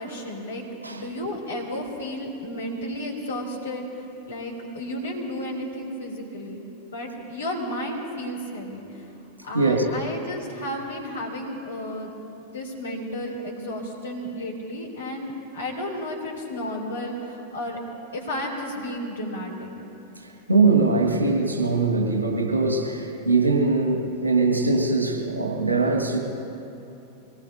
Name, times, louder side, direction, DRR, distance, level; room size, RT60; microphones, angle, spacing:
voice 1, 0.0-6.6 6.9-9.0 9.4-12.1 12.4-17.8 18.1-19.7, left 1 dB, 70° left, -1 dB, 3.1 m, -33 dB
voice 2, 9.5-9.9 20.2-26.2, right 3 dB, 80° right, 0 dB, 1.8 m, -22 dB
24.5 x 18.5 x 2.7 m, 2.8 s
figure-of-eight pair, 90°, 0 cm